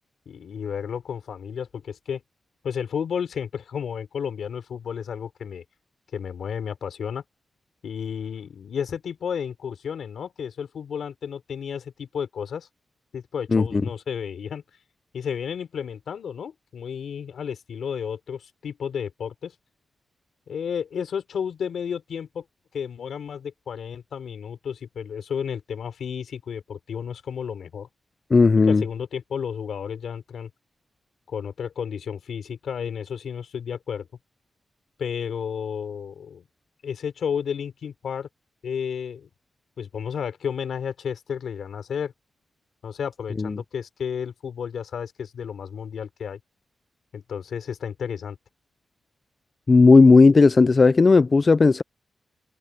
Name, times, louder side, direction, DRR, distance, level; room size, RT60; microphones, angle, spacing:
voice 1, 0.3-2.2 2.6-5.6 6.1-7.2 7.8-12.7 13.1-14.6 15.1-19.5 20.5-22.4 22.7-27.9 28.7-30.5 31.3-34.1 35.0-36.4 36.8-38.3 38.6-39.3 39.8-42.1 42.8-46.4 47.1-48.4, left 7 dB, 75° left, 3.6 m, -32 dB
voice 2, 13.5-13.8 28.3-28.8 43.4-43.6 49.7-51.8, left 4 dB, 35° left, 0.4 m, -15 dB
wide cardioid pair, 135°, 0 cm